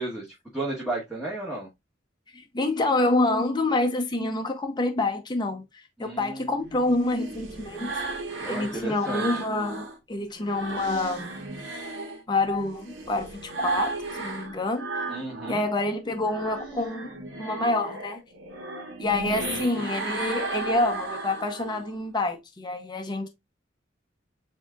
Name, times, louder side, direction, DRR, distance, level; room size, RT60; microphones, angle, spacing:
voice 1, 0.0-1.7 6.0-6.5 8.4-9.4 15.1-15.6 19.4-19.7, right 2 dB, 5° right, 1.1 m, -34 dB
voice 2, 2.3-8.0 8.5-11.4 12.3-14.9 15.5-17.1 17.4-18.2 19.0-23.3, left 2 dB, 25° left, 0.6 m, -27 dB
sound 1, 6.5-10.0 10.3-15.7 16.1-22.0, right 3 dB, 75° right, 1.3 m, -35 dB
7.0 x 2.7 x 2.3 m
head